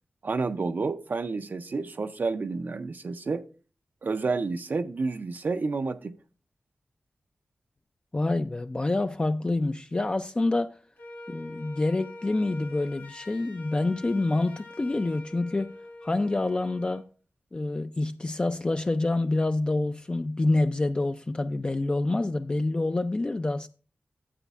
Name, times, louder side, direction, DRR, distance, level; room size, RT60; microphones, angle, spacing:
voice 1, 0.2-3.5 4.0-6.1, right 4 dB, 55° right, 0.5 m, -30 dB
voice 2, 8.1-10.8 11.3-15.7 16.0-17.0 17.5-23.7, left 2 dB, 25° left, 0.3 m, -27 dB
Wind instrument woodwind instrument, 11.0-17.1, left 2 dB, 75° left, 1.9 m, -45 dB
12.0 x 7.8 x 2.4 m
wide cardioid pair, 110°, 4 cm